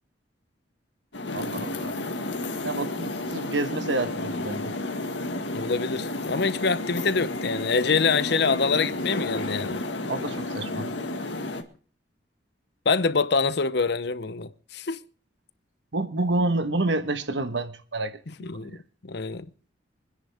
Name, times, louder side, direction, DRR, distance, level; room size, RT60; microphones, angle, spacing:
sound 1, 1.1-11.6, left 2 dB, 80° left, 1.8 m, -32 dB
voice 1, 1.3-2.0 2.6-4.7 10.1-10.9 15.9-18.2 18.5-18.8, right 2 dB, 75° right, 1.3 m, -29 dB
voice 2, 5.5-9.8 12.8-15.0 18.4-19.5, left 4 dB, 65° left, 0.8 m, -25 dB
25.0 x 10.0 x 3.5 m
head